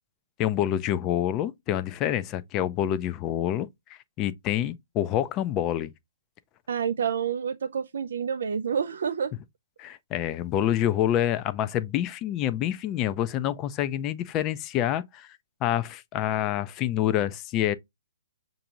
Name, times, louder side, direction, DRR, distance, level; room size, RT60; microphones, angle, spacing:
voice 1, 0.4-3.7 4.2-5.9 9.8-15.3 15.6-17.7, left 11 dB, 30° left, 0.4 m, -27 dB
voice 2, 6.7-9.3, right 7 dB, 65° right, 0.4 m, -28 dB
6.7 x 2.6 x 2.8 m
figure-of-eight pair, 125°, 0 cm